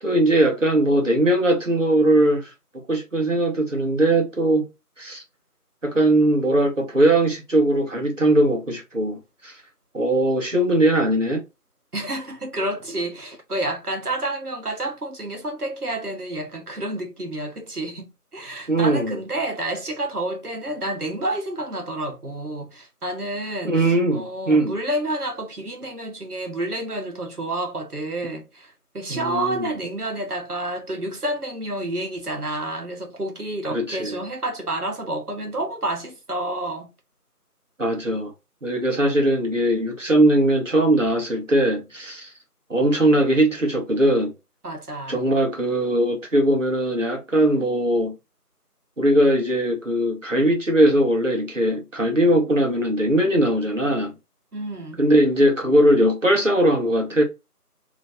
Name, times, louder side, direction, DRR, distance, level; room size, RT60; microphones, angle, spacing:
voice 1, 0.0-2.5 2.9-4.6 5.0-5.2 5.8-9.6 9.9-11.4 18.7-19.2 23.6-24.7 29.1-29.7 33.7-34.2 37.8-38.3 38.6-42.3 42.7-44.3 45.1-48.1 49.0-54.1 55.0-57.2, right 1 dB, 50° right, 1.3 m, -20 dB
voice 2, 11.9-36.9 44.6-45.2 54.5-55.0, right 1 dB, 70° right, 1.3 m, -29 dB
3.2 x 3.0 x 2.5 m
figure-of-eight pair, 175°, 47 cm